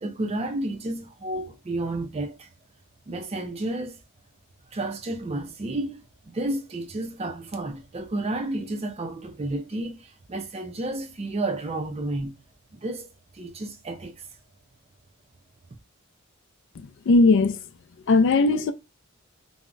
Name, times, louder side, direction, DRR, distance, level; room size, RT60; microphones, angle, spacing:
voice 1, 0.0-2.5 3.1-4.0 4.7-12.3 12.7-13.1 13.3-14.2, right 2 dB, 30° right, 0.4 m, -31 dB
voice 2, 16.8-17.6 18.1-18.7, left 3 dB, 55° left, 0.3 m, -19 dB
2.2 x 2.0 x 3.7 m
head